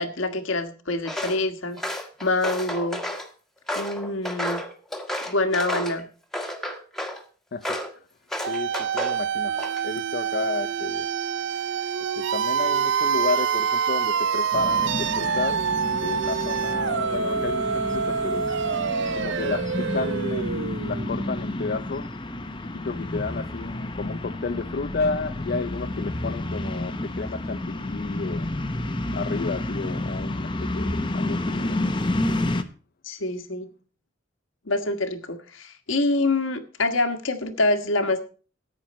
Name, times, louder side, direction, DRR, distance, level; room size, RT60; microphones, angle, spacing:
voice 1, 0.0-1.8 2.2-3.0 3.7-4.6 5.2-6.1 33.0-33.7 34.6-38.2, left 2 dB, 75° left, 1.5 m, -25 dB
Walk footsteps, 1.0-1.4 1.8-3.3 3.7-6.0 6.3-7.2 7.6-7.9 8.3-9.2 9.5-10.0, left 1 dB, ahead, 1.5 m, -31 dB
voice 2, 7.5-8.0 8.5-9.6 9.8-11.1 12.2-18.5 19.1-28.5 29.1-31.8, left 4 dB, 50° left, 0.5 m, -32 dB
sound 1, 8.4-21.2, right 6 dB, 60° right, 0.5 m, -26 dB
sound 2, 14.5-32.6, left 1 dB, 25° left, 0.9 m, -30 dB
14.0 x 9.5 x 4.2 m
head